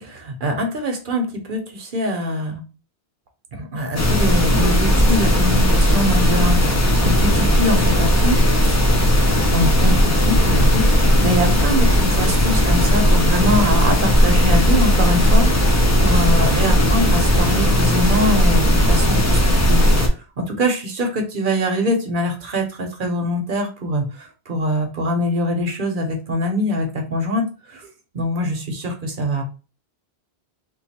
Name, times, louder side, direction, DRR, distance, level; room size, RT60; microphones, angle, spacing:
voice 1, 0.0-2.6 3.5-8.4 9.5-19.4 19.7-19.9 20.1-27.9 28.1-29.4, equal, 55° right, 4 dB, 0.9 m, -23 dB
sound 1, 4.0-20.1, equal, 25° left, 0.4 m, -16 dB
3.0 x 2.3 x 4.2 m, 0.33 s
omnidirectional pair, 1.1 m